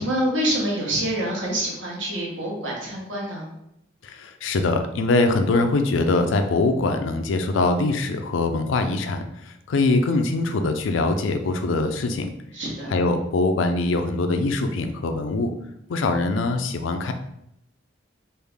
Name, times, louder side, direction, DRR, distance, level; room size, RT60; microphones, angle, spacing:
voice 1, 0.0-3.5 12.5-12.9, right 1 dB, 85° right, -3 dB, 1.2 m, -26 dB
voice 2, 4.0-12.3 12.9-15.5 15.9-17.1, left 3 dB, 85° left, 7 dB, 0.4 m, -23 dB
3.4 x 2.4 x 3.4 m, 0.80 s
head